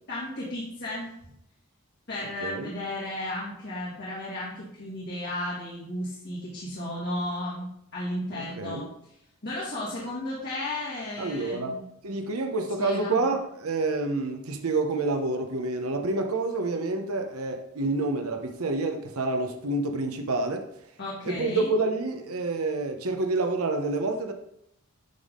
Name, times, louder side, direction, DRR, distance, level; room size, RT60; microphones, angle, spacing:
voice 1, 0.1-1.1 2.1-8.9 9.4-11.8 12.8-13.2 21.0-21.7, left 1 dB, 55° left, 1.9 m, -34 dB
voice 2, 2.4-2.7 8.3-8.9 11.2-11.8 12.0-20.7 21.2-24.3, right 3 dB, 80° right, 0.8 m, -28 dB
10.5 x 3.5 x 3.7 m
head